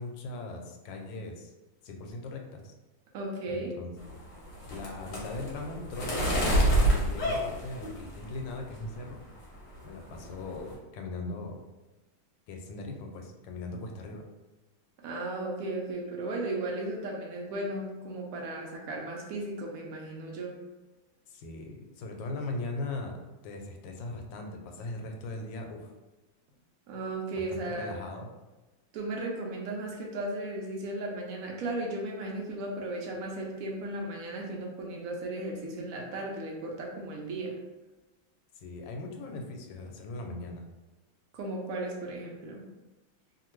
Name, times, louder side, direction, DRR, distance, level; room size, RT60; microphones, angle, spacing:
voice 1, 0.0-1.5 1.8-2.7 3.5-3.9 4.7-6.2 6.6-9.2 9.8-11.6 12.5-14.2 21.3-25.9 27.3-28.3 38.5-40.7, left 2 dB, 90° left, 3 dB, 1.3 m, -39 dB
voice 2, 3.1-3.8 15.0-20.6 26.9-28.0 28.9-37.6 41.3-42.7, right 2 dB, 70° right, 0 dB, 0.8 m, -35 dB
sound 1, 4.0-8.4 8.8-9.3 9.5-9.8 10.1-10.7, right 1 dB, 55° left, 1.0 m, -28 dB
2.8 x 2.5 x 3.0 m, 1.1 s
omnidirectional pair, 2.0 m